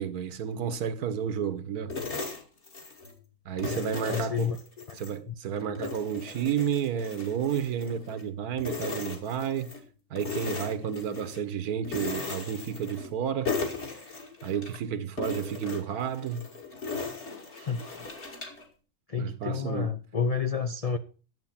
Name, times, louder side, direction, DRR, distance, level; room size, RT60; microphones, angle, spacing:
voice 1, 0.0-1.9 3.4-4.5 5.0-9.7 10.1-13.5 14.4-16.4 19.2-19.9, right 8 dB, 80° right, 1.4 m, -31 dB
sound 1, 1.9-3.2 3.6-5.2 5.6-8.3 8.6-9.8 10.2-11.4 11.8-13.2 13.4-14.8 15.2-18.6, left 4 dB, 45° left, 2.4 m, -37 dB
voice 2, 3.6-5.0 5.3-5.4 17.6-18.1 19.1-21.0, left 6 dB, 70° left, 0.3 m, -31 dB
11.0 x 7.6 x 5.7 m
omnidirectional pair, 1.6 m